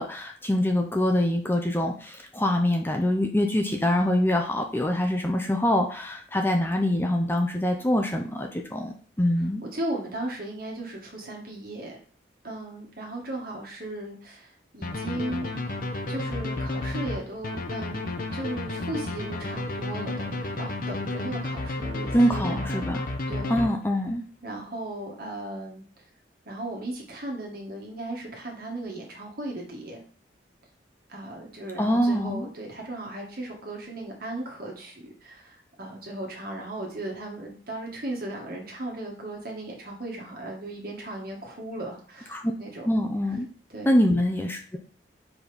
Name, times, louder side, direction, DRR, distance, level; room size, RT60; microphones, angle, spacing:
voice 1, 0.0-9.6 22.1-23.0 23.5-24.2 31.8-32.5 42.3-42.4 42.9-43.5 43.9-44.8, left 1 dB, 10° left, 3 dB, 0.6 m, -24 dB
voice 2, 9.6-12.0 12.4-15.5 16.1-22.8 23.3-23.7 24.4-25.9 26.5-30.0 31.1-42.9 43.7-43.9, right 1 dB, 50° right, -1 dB, 1.8 m, -36 dB
sound 1, 14.8-24.1, left 2 dB, 50° left, 0.8 m, -32 dB
4.9 x 4.1 x 5.1 m, 0.42 s
head